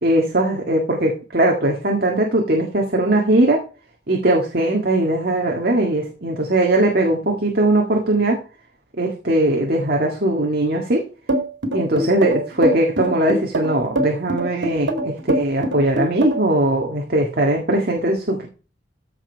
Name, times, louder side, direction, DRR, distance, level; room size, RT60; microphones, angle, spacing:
voice 1, 0.0-3.6 4.1-8.4 9.0-11.0 11.7-18.5, right 1 dB, 55° right, 1 dB, 1.8 m, -19 dB
sound 1, 11.3-16.6, right 1 dB, 90° right, 2.4 m, -23 dB
14.5 x 5.4 x 4.5 m, 0.35 s
head